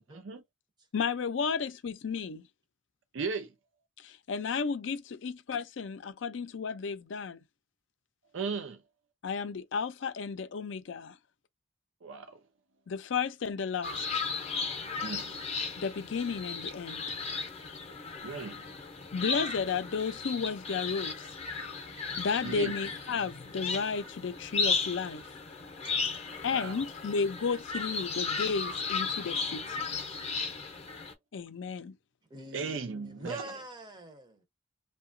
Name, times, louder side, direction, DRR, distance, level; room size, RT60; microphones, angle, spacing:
voice 1, 0.1-0.4 3.1-3.5 8.3-8.8 12.0-12.4 15.0-15.4 18.2-18.6 22.4-22.7 26.5-26.8 32.5-33.5, right 5 dB, 80° right, 0.5 m, -36 dB
voice 2, 0.9-2.4 4.0-7.4 9.2-11.1 12.9-14.0 15.8-17.0 19.1-21.1 22.1-25.2 26.4-29.9 31.3-32.0, left 5 dB, 70° left, 0.5 m, -33 dB
sound 1, 13.8-31.1, left 5 dB, 35° left, 0.6 m, -35 dB
voice 3, 32.3-34.4, right 1 dB, 25° right, 0.6 m, -45 dB
2.8 x 2.2 x 2.5 m
head